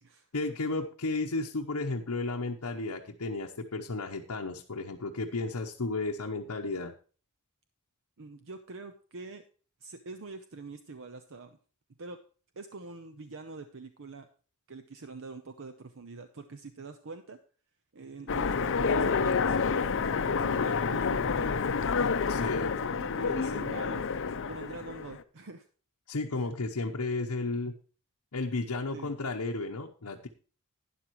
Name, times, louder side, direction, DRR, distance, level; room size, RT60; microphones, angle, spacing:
voice 1, 0.3-6.9 22.3-22.7 26.1-27.8 28.3-30.3, left 3 dB, 90° left, 0 dB, 0.9 m, -33 dB
voice 2, 8.2-9.4 9.8-11.6 12.0-12.2 12.6-14.3 14.7-17.4 17.9-21.8 22.7-24.0 24.5-25.6 26.3-26.5 28.9-29.1, right 3 dB, 60° right, 9 dB, 0.8 m, -44 dB
Train, 18.3-25.2, left 5 dB, 60° left, 0.6 m, -28 dB
12.0 x 10.0 x 3.1 m, 0.38 s
head